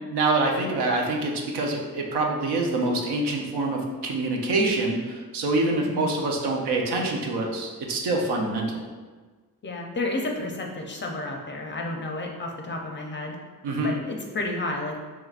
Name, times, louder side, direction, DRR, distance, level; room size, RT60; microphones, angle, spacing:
voice 1, 0.1-8.8 13.6-13.9, right 2 dB, 80° right, 1 dB, 0.7 m, -25 dB
voice 2, 5.7-6.0 9.6-13.4 13.8-15.0, left 2 dB, 30° left, 1 dB, 0.5 m, -31 dB
4.7 x 3.1 x 2.4 m, 1.4 s
cardioid pair, 135°, 39 cm